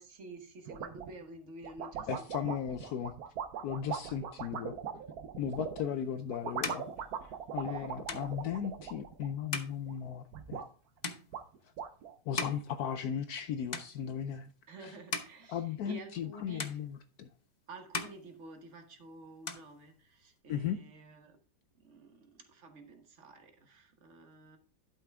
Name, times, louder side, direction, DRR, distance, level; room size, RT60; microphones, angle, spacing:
voice 1, 0.0-2.7 5.8-6.1 7.6-8.4 14.7-16.8 17.7-21.4 21.7-24.6, right 2 dB, 45° right, 1.5 m, -51 dB
sound 1, 0.7-1.2 1.6-5.9 6.3-9.6 9.9-10.7 11.0-11.1 11.3-12.1, right 8 dB, 65° right, 1.2 m, -41 dB
voice 2, 2.1-3.2 3.6-4.7 5.4-6.9 7.5-10.6 12.3-14.5 14.8-14.9 15.5-17.3 20.5-20.8, left 8 dB, 70° left, 1.0 m, -36 dB
sound 2, 5.8-13.4 13.7-14.4 14.8-16.3 16.6-17.5 17.8-19.0 19.3-20.4, left 4 dB, 35° left, 0.7 m, -42 dB
11.5 x 5.9 x 3.5 m
omnidirectional pair, 1.9 m